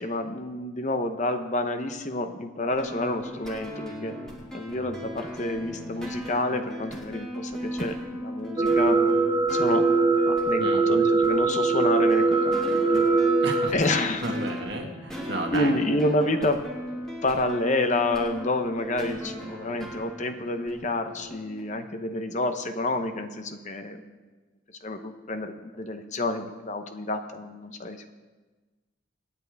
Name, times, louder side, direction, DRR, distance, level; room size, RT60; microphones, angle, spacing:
voice 1, 0.0-4.2 4.5-9.0 9.5-9.8 10.3-13.0 13.7-14.3 15.5-16.6 17.2-24.1 24.8-28.1, left 2 dB, 35° left, 7 dB, 0.8 m, -29 dB
sound 1, 2.7-21.6, left 1 dB, 5° left, 2.2 m, -37 dB
sound 2, 8.6-13.7, right 3 dB, 20° right, 0.7 m, -22 dB
voice 2, 10.6-11.1 13.4-13.7 14.2-16.0, right 2 dB, 55° right, 2 dB, 1.7 m, -33 dB
25.5 x 9.5 x 3.5 m, 1.3 s
head